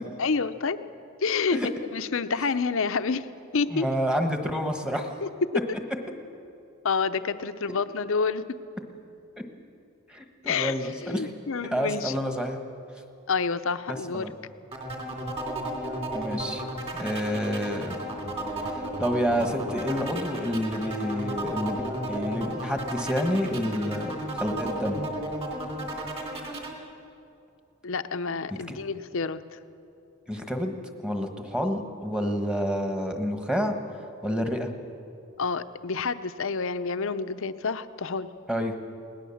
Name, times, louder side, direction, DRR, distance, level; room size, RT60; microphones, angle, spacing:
voice 1, 0.2-0.8 1.2-1.6 1.9-3.3 3.5-3.9 5.2-5.3 6.8-8.4 10.4-12.1 13.3-14.3 27.8-29.6 35.4-38.3, left 5 dB, 60° left, 11 dB, 0.7 m, -28 dB
voice 2, 3.7-5.1 10.1-11.3 11.7-12.6 13.9-14.3 16.1-16.6 16.9-18.0 18.6-21.8 22.1-25.1 28.5-28.7 30.3-30.7 31.0-33.8 34.2-34.7 38.5-38.7, equal, 5° right, 5 dB, 1.3 m, -29 dB
sound 1, 14.7-26.7, right 1 dB, 25° right, 2.9 m, -34 dB
20.5 x 18.5 x 7.2 m, 2.6 s
head